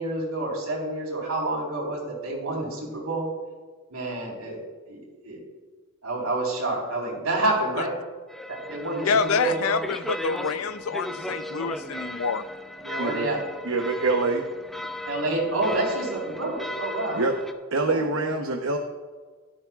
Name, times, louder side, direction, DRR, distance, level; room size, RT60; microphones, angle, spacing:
voice 1, 0.0-3.3 3.9-5.4 6.0-8.0 8.5-9.9 12.8-13.4 15.0-17.2 17.8-18.0, right 2 dB, 85° right, -2 dB, 4.3 m, -28 dB
sound 1, 8.3-17.5, left 1 dB, ahead, 0.6 m, -36 dB
voice 2, 9.0-12.4, left 5 dB, 75° left, 12 dB, 0.5 m, -27 dB
voice 3, 13.0-13.3 13.6-14.4 17.1-17.4 17.7-18.8, right 3 dB, 70° right, 3 dB, 0.9 m, -25 dB
16.5 x 13.0 x 2.4 m, 1.4 s
head